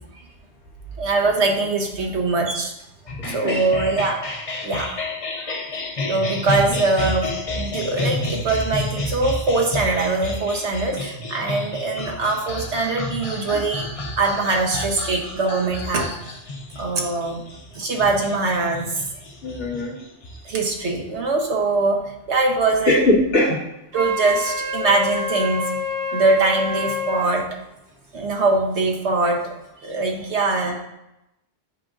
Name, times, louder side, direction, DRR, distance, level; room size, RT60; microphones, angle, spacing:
voice 1, 1.0-2.7 3.3-4.2 4.6-5.0 5.4-5.6 6.1-7.3 7.5-16.1 16.8-17.4 17.7-19.0 20.4-22.0 22.3-23.0 23.9-25.6 26.1-27.4 28.1-29.5 29.8-30.7, right 3 dB, 65° right, 2 dB, 1.2 m, -22 dB
sound 1, 3.1-20.7, left 2 dB, 35° left, 0.6 m, -30 dB
voice 2, 19.4-19.9 22.9-23.6, left 1 dB, 70° left, -5 dB, 1.9 m, -19 dB
Wind instrument woodwind instrument, 23.9-27.3, left 2 dB, 80° right, 1.5 m, -27 dB
7.8 x 5.1 x 2.5 m, 0.88 s
omnidirectional pair, 1.3 m